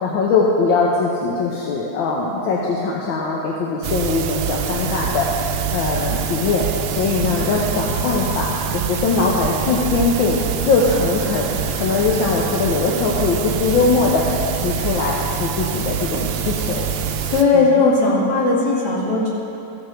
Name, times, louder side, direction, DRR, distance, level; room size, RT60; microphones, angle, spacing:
voice 1, 0.0-16.9 17.5-17.7, left 4 dB, 75° left, -3 dB, 1.7 m, -21 dB
sound 1, 3.8-17.4, right 7 dB, 90° right, 1.4 m, -25 dB
voice 2, 17.3-19.3, left 3 dB, 55° left, -7 dB, 2.8 m, -17 dB
14.0 x 7.7 x 4.5 m, 2.8 s
omnidirectional pair, 2.1 m